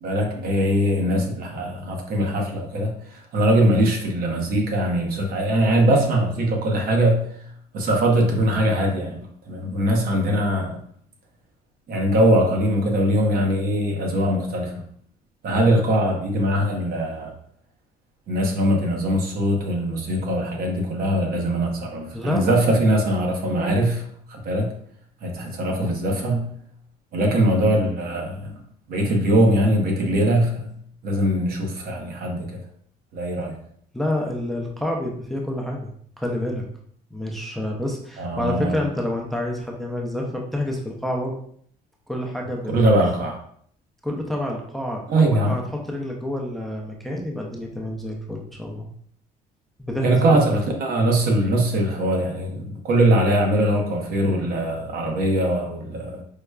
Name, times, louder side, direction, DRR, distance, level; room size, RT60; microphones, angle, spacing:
voice 1, 0.0-7.2 7.7-10.8 11.9-14.8 15.4-17.3 18.3-24.0 24.3-24.7 25.2-26.5 27.1-28.5 28.9-30.7 31.0-32.6 33.1-33.5 38.2-38.8 42.7-43.4 45.1-45.5 50.0-56.2, right 1 dB, 60° right, 1 dB, 0.8 m, -21 dB
voice 2, 22.1-22.6 33.9-35.9 36.2-36.6 37.1-41.3 42.1-42.8 44.0-48.9 49.8-50.1, left 1 dB, ahead, 0 dB, 0.5 m, -28 dB
4.8 x 2.1 x 2.3 m, 0.63 s
cardioid pair, 110°, 17 cm